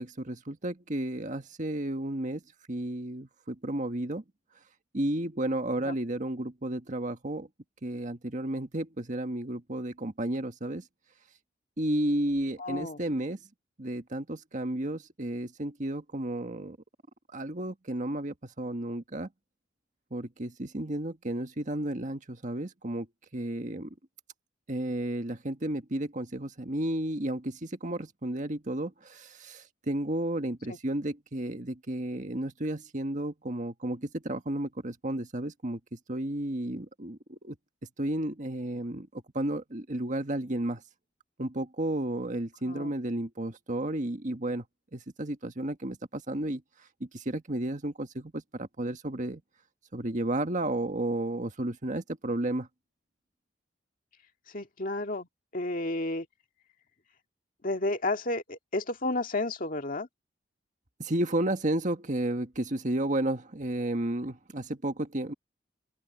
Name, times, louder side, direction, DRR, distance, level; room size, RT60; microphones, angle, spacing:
voice 1, 0.0-2.4 2.7-4.2 4.9-7.5 7.8-10.8 11.8-13.4 13.8-16.8 17.3-19.3 20.1-23.1 23.3-23.9 24.7-35.8 36.1-37.6 38.0-39.1 39.3-40.8 41.4-44.6 44.9-46.6 47.0-49.4 49.9-52.7 61.0-65.3, right 1 dB, 40° right, 1.6 m, -32 dB
voice 2, 12.6-13.0 30.7-30.8 42.6-42.9 54.5-55.3 55.5-56.3 57.6-60.1, left 2 dB, 45° left, 2.0 m, -32 dB
open air
head